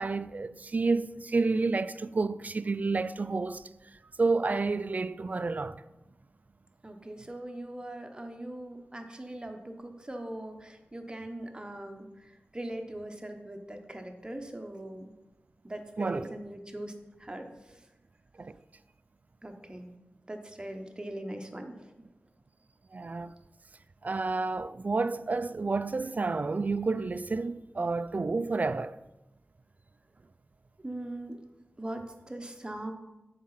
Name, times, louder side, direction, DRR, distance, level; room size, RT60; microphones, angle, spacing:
voice 1, 0.0-3.6 4.2-5.8 16.0-16.4 18.4-18.6 22.9-23.3 24.0-28.9, right 3 dB, 40° right, 0.3 m, -30 dB
voice 2, 6.8-15.1 15.6-16.9 17.2-17.5 19.4-19.9 20.3-21.9 30.8-31.4 31.8-32.9, right 1 dB, 20° right, 1.0 m, -41 dB
7.3 x 4.8 x 5.8 m
wide cardioid pair, 75°, 4 cm